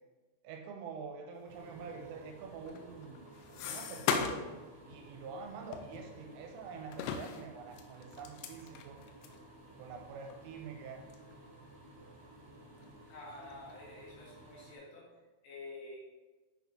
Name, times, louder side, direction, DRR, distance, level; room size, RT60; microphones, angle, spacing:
voice 1, 0.4-9.0 9.8-11.1, right 5 dB, 85° right, 3 dB, 3.0 m, -46 dB
sound 1, 1.5-14.8, right 1 dB, 45° right, 2.6 m, -55 dB
sound 2, 2.6-4.6 4.9-5.1 5.7-6.6 6.9-9.4 10.0-10.1 10.3-10.4 11.1-11.3 11.8-12.4 12.8-13.5, left 7 dB, 85° left, 2.7 m, -38 dB
voice 2, 13.1-15.0 15.4-16.0, left 2 dB, 70° left, -5 dB, 3.0 m, -48 dB
7.9 x 6.4 x 2.7 m, 1.2 s
omnidirectional pair, 6.0 m